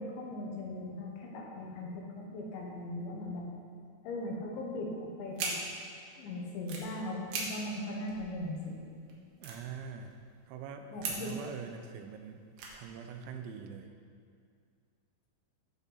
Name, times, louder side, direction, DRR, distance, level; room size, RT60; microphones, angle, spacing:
voice 1, 0.0-3.5 4.0-5.5 6.2-8.9 10.9-11.3, left 1 dB, 80° left, -1 dB, 3.7 m, -39 dB
sound 1, 5.3-5.5 6.5-6.9 7.3-7.4 7.8-7.9 8.1-8.7 9.1-9.2 9.4-10.3 11.0-11.5 12.0-12.2 12.6-13.3, right 5 dB, 70° right, 3.2 m, -39 dB
voice 2, 9.4-10.1 10.5-12.4 12.7-13.9, right 6 dB, 90° right, 6 dB, 3.1 m, -44 dB
15.5 x 6.1 x 4.1 m, 2.3 s
omnidirectional pair, 5.1 m